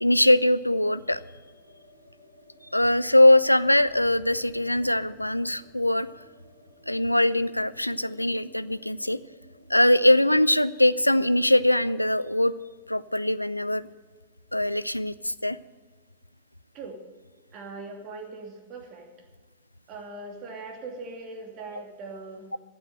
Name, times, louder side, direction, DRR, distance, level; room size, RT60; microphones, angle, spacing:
voice 1, 0.0-1.2 2.7-6.1 6.9-9.2 9.7-12.5 12.9-13.9 14.5-15.6, left 1 dB, 85° left, 16 dB, 0.3 m, -22 dB
sound 1, 0.7-16.8 17.1-17.2 17.5-18.2, equal, 85° right, 3.1 m, -56 dB
voice 2, 17.5-19.1 19.9-22.5, right 3 dB, 35° right, 3 dB, 2.7 m, -40 dB
14.0 x 8.5 x 7.6 m, 1.4 s
figure-of-eight pair, 90°, 0 cm